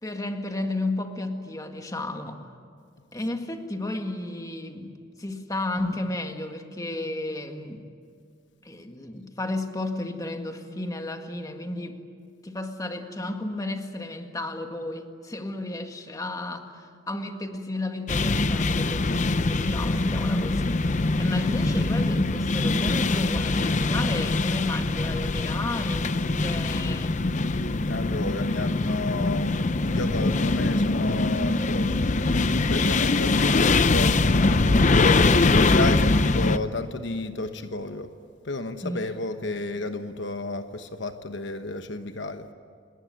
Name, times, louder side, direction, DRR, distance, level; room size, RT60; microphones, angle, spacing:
voice 1, 0.0-2.4 3.1-7.9 8.6-12.0 12.4-27.2 38.8-39.1, left 2 dB, 20° left, 5 dB, 1.8 m, -33 dB
sound 1, 18.1-36.6, left 3 dB, 40° left, 0.7 m, -23 dB
voice 2, 27.5-32.1 32.7-34.8 35.0-38.1 38.4-42.5, left 2 dB, 65° left, 8 dB, 1.1 m, -32 dB
29.5 x 19.5 x 9.7 m, 2.2 s
head